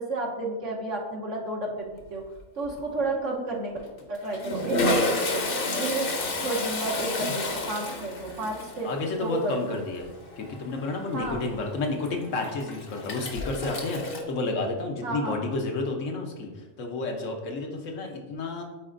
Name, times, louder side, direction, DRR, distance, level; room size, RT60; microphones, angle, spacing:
voice 1, 0.0-2.2 2.5-3.7 4.1-5.4 5.8-6.1 6.4-8.9 9.2-9.9 11.1-11.4 15.0-15.4, right 2 dB, 75° right, -1 dB, 1.4 m, -31 dB
Toilet flush, 2.0-2.4 2.6-2.8 3.8-14.2, left 2 dB, 50° left, 0.9 m, -31 dB
voice 2, 8.8-10.1 10.4-18.6, left 3 dB, 80° left, 2 dB, 1.2 m, -31 dB
8.7 x 4.2 x 2.5 m, 1.2 s
omnidirectional pair, 1.3 m